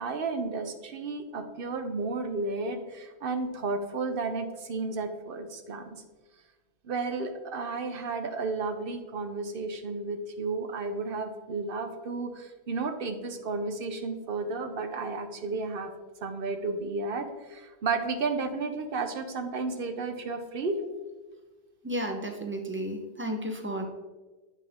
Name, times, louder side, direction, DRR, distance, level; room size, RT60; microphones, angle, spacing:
voice 1, 0.0-6.0 6.8-15.9 16.2-20.8, right 3 dB, 60° right, 7 dB, 0.9 m, -32 dB
voice 2, 21.8-23.8, right 1 dB, 15° right, 3 dB, 0.8 m, -33 dB
8.4 x 5.4 x 3.6 m, 1.2 s
omnidirectional pair, 1.1 m